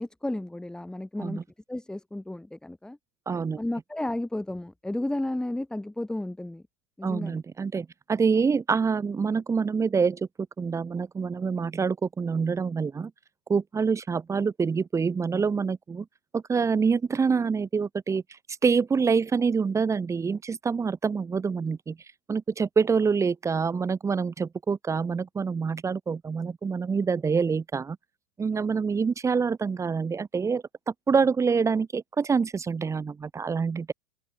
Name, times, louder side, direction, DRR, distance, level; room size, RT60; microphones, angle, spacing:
voice 1, 0.0-1.4 1.7-3.0 3.6-6.6 7.0-7.4, left 1 dB, 5° left, 3.3 m, -33 dB
voice 2, 3.3-3.6 7.0-10.3 10.6-13.1 13.5-16.1 16.3-18.2 18.6-22.0 22.3-28.0 28.4-33.9, right 5 dB, 20° right, 3.3 m, -26 dB
hypercardioid pair, 110°, 17 cm